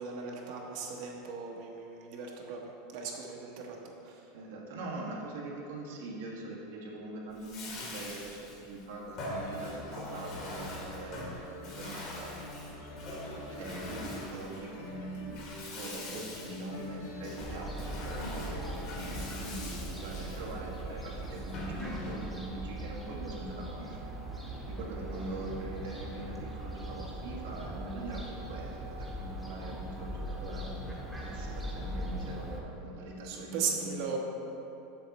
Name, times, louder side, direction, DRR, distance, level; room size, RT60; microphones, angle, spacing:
voice 1, 0.0-4.3 33.2-34.2, right 6 dB, 60° right, 0 dB, 1.1 m, -38 dB
voice 2, 4.3-12.3 12.7-34.2, right 2 dB, 85° right, -3 dB, 1.6 m, -43 dB
Bathtub (filling or washing), 7.3-22.4, left 2 dB, 50° left, 1.7 m, -43 dB
sound 1, 9.3-21.3, left 1 dB, 80° left, 1.3 m, -46 dB
Fowl, 17.4-32.6, right 1 dB, ahead, 1.0 m, -40 dB
7.5 x 6.4 x 4.1 m, 2.9 s
supercardioid pair, 145°, 0 cm